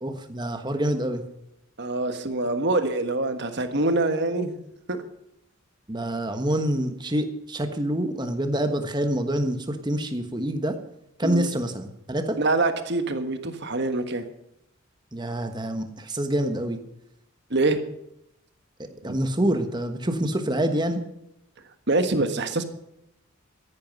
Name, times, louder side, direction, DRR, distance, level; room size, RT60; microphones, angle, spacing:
voice 1, 0.0-1.2 5.9-10.8 11.2-12.4 15.1-16.8 18.8-21.0, right 1 dB, 20° right, 7 dB, 1.3 m, -26 dB
voice 2, 1.8-4.6 4.9-5.0 11.2-11.5 12.4-14.2 17.5-17.8 21.9-22.6, right 2 dB, 50° right, 8 dB, 1.4 m, -25 dB
14.5 x 11.0 x 5.4 m, 0.82 s
head